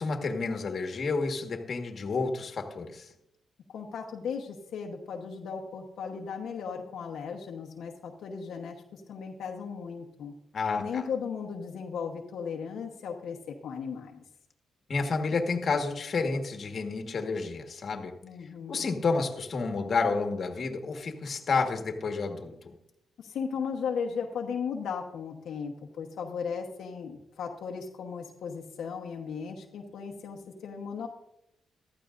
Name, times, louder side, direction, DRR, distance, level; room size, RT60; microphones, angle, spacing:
voice 1, 0.0-3.1 10.5-11.0 14.9-18.1 18.7-22.5, left 4 dB, 50° left, 4 dB, 1.5 m, -30 dB
voice 2, 3.7-10.3 10.8-14.2 18.2-18.9 23.2-31.1, left 6 dB, 75° left, 1 dB, 1.1 m, -36 dB
15.0 x 12.5 x 2.6 m, 0.80 s
cardioid pair, 110°, 0 cm